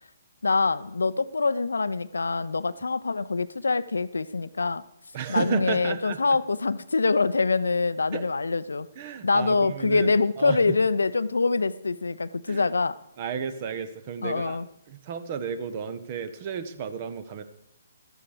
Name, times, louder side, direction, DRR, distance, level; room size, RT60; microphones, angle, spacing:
voice 1, 0.4-4.8 5.3-8.9 9.2-13.0 14.2-14.6, left 4 dB, 80° left, 16 dB, 0.5 m, -25 dB
voice 2, 5.1-6.4 8.1-8.3 8.9-10.8 12.5-12.7 13.2-14.6 14.9-17.4, right 7 dB, 40° right, 11 dB, 1.1 m, -33 dB
13.0 x 9.9 x 4.9 m, 0.82 s
figure-of-eight pair, 135°, 0 cm